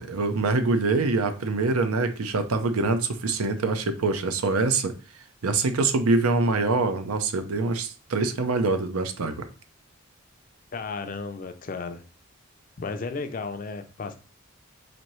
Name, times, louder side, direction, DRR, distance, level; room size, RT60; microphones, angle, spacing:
voice 1, 0.0-4.9 5.4-9.5, right 3 dB, 90° right, 0.6 m, -24 dB
voice 2, 10.7-12.0 12.8-14.1, left 4 dB, 40° left, 0.4 m, -33 dB
4.2 x 2.7 x 3.0 m
head